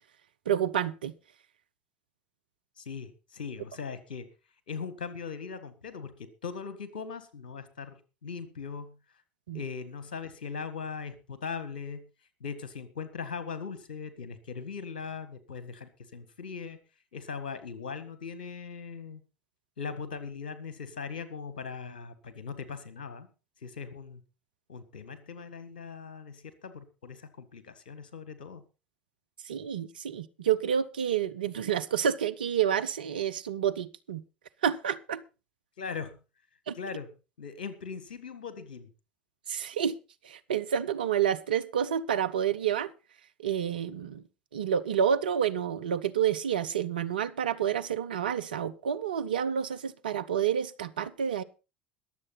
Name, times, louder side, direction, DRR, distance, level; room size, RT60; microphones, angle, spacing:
voice 1, 0.5-1.1 9.5-9.6 29.5-34.2 34.6-35.2 36.7-36.8 39.5-40.0 40.2-42.9 43.4-44.2 44.5-51.4, right 8 dB, 80° right, 0.7 m, -29 dB
voice 2, 2.8-4.3 4.7-9.0 9.5-12.1 12.4-16.8 17.1-19.2 19.8-23.3 23.6-24.2 24.7-28.6 35.8-36.2 36.8-37.1 37.4-38.9, left 5 dB, 75° left, 1.6 m, -40 dB
21.5 x 7.6 x 4.0 m
figure-of-eight pair, 65°, 5 cm